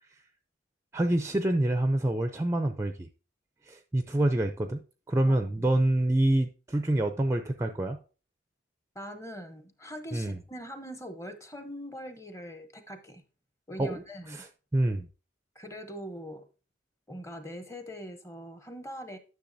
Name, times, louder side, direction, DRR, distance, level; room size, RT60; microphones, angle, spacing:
voice 1, 0.9-3.1 3.7-8.0 10.1-10.4 13.8-15.1, right 1 dB, 15° right, 0.4 m, -27 dB
voice 2, 5.2-5.7 8.9-13.2 13.7-14.4 15.5-16.4 17.1-19.2, equal, 15° left, 0.8 m, -42 dB
10.0 x 6.3 x 2.6 m
head